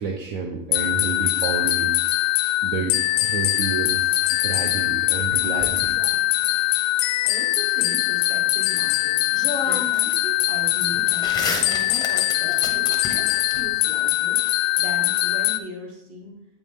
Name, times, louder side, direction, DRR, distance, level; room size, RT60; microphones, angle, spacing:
voice 1, 0.0-2.0 2.6-4.1 4.4-5.9, right 5 dB, 60° right, 1 dB, 1.0 m, -29 dB
sound 1, 0.7-15.6, left 16 dB, 55° left, 0.5 m, -22 dB
sound 2, 5.3-6.6 8.8-8.9 9.3-10.1 10.4-13.6, left 4 dB, 10° left, 0.7 m, -32 dB
voice 2, 7.1-16.5, equal, 35° right, -2 dB, 2.2 m, -39 dB
8.3 x 4.8 x 3.6 m, 0.81 s
supercardioid pair, 160°, 37 cm